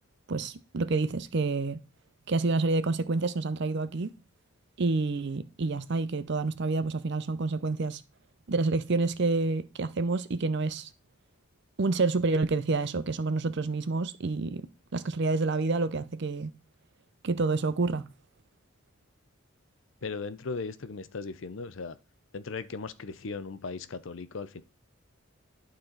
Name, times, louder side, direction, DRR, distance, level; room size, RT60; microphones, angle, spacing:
voice 1, 0.3-1.8 2.3-4.1 4.8-8.0 8.5-10.9 11.8-14.7 14.9-16.5 17.2-18.1, right 3 dB, 55° right, 0.6 m, -28 dB
voice 2, 20.0-22.0 22.3-24.6, left 4 dB, 65° left, 0.6 m, -37 dB
11.5 x 4.3 x 3.9 m
head